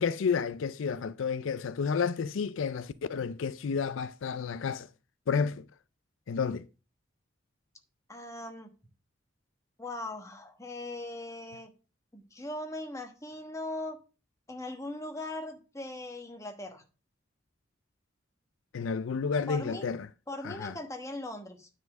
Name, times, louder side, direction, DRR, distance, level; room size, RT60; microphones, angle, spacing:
voice 1, 0.0-4.9 5.3-5.7 6.3-6.7 18.7-20.1 20.4-20.7, left 6 dB, 85° left, 0.4 m, -31 dB
voice 2, 8.1-8.7 9.8-11.7 12.1-14.0 14.5-16.8 19.5-19.9 20.3-21.7, left 1 dB, 15° left, 1.2 m, -39 dB
9.5 x 4.3 x 5.9 m
head